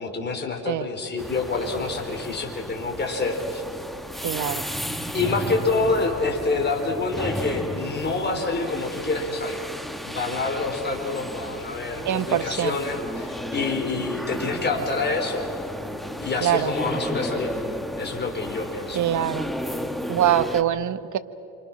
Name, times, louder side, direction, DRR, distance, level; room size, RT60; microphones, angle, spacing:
voice 1, 0.0-3.6 5.1-9.6 10.0-15.5 16.2-17.5 18.0-19.0, left 3 dB, 25° left, 2 dB, 4.5 m, -27 dB
sound 1, 1.2-20.6, equal, ahead, 1.3 m, -33 dB
voice 2, 4.2-4.7 12.1-12.8 16.4-16.7 18.9-19.5 20.1-21.2, right 11 dB, 45° right, 11 dB, 1.2 m, -23 dB
28.0 x 26.5 x 6.3 m, 2.7 s
cardioid pair, 120°, 43 cm